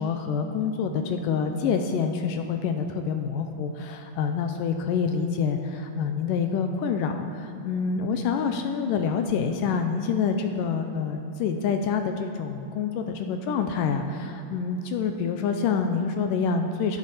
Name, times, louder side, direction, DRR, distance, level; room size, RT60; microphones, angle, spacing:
voice 1, 0.0-17.0, left 6 dB, 80° left, 6 dB, 2.1 m, -27 dB
14.5 x 10.5 x 4.2 m, 2.9 s
omnidirectional pair, 4.3 m